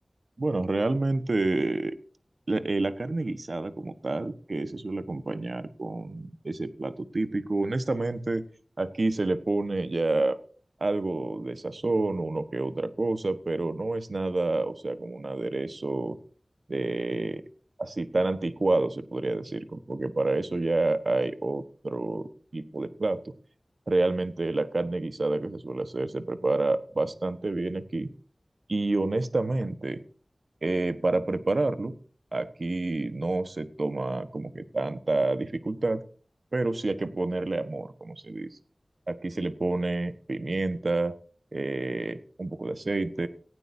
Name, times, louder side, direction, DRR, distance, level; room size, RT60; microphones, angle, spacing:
voice 1, 0.4-2.0 2.5-8.4 8.8-10.4 10.8-16.2 16.7-17.4 17.8-23.3 23.9-28.1 28.7-30.0 30.6-31.9 32.3-36.0 36.5-38.5 39.1-41.1 41.5-43.3, right 2 dB, 65° right, 12 dB, 1.3 m, -28 dB
18.0 x 16.0 x 2.7 m, 0.44 s
wide cardioid pair, 55°, 0 cm